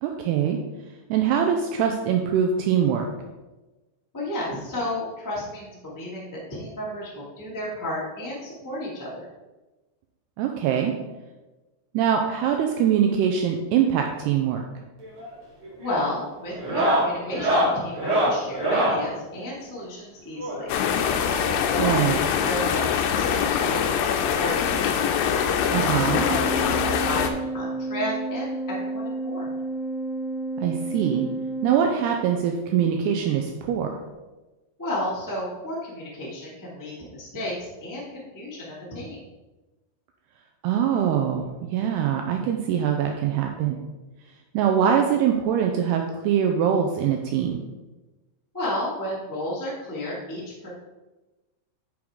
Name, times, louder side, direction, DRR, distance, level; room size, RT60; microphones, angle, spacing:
voice 1, 0.0-0.6 1.1-3.1 10.4-10.9 11.9-14.6 21.8-22.2 25.7-26.3 30.6-31.2 31.6-33.9 40.6-43.8 44.5-47.6, right 8 dB, 85° right, 3 dB, 2.4 m, -23 dB
voice 2, 4.1-9.2 15.8-20.7 21.3-24.0 24.3-25.0 25.8-26.6 27.0-29.5 34.8-39.2 48.5-50.7, left 1 dB, 25° left, -7 dB, 0.3 m, -32 dB
sound 1, 15.0-15.3 15.6-16.0 16.5-19.1 20.4-21.8 22.8-22.9 23.1-23.2 23.7-23.8 25.1-25.2 26.5-26.6, equal, 40° right, 2.2 m, -25 dB
sound 2, 20.7-27.3, left 8 dB, 85° left, 2.8 m, -23 dB
Organ, 25.9-32.5, right 2 dB, 65° right, 3.7 m, -31 dB
9.5 x 6.3 x 3.7 m, 1.1 s
omnidirectional pair, 5.2 m